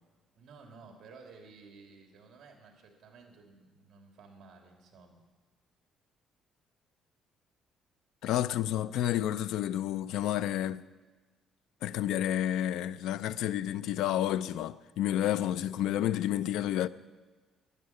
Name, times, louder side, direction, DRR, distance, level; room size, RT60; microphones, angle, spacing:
voice 1, 0.4-5.2, right 4 dB, 55° right, 3.1 m, -54 dB
voice 2, 8.2-10.8 11.8-16.9, left 12 dB, 80° left, 0.5 m, -30 dB
12.5 x 11.5 x 9.7 m
cardioid pair, 150°, 0 cm